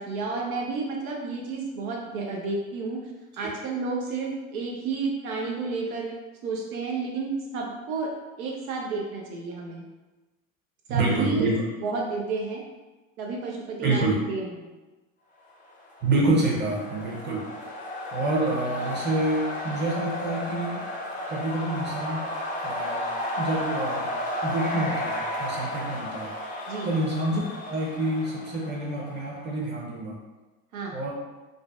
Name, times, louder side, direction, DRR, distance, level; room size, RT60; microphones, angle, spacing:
voice 1, 0.0-3.1 3.4-6.1 6.4-8.1 8.4-9.8 10.9-11.5 11.8-12.6 13.2-14.7 26.7-26.9 30.7-31.0, right 4 dB, 80° right, -1 dB, 0.5 m, -31 dB
voice 2, 10.9-11.5 13.8-14.2 16.0-17.4 18.1-20.8 21.3-22.2 22.6-23.1 23.4-24.1 24.4-26.3 26.8-30.2 30.9-31.1, right 2 dB, 25° right, -3 dB, 0.8 m, -27 dB
sound 1, 15.8-29.6, left 1 dB, 20° left, 0.5 m, -33 dB
2.5 x 2.1 x 2.4 m, 1.1 s
hypercardioid pair, 75°, 42 cm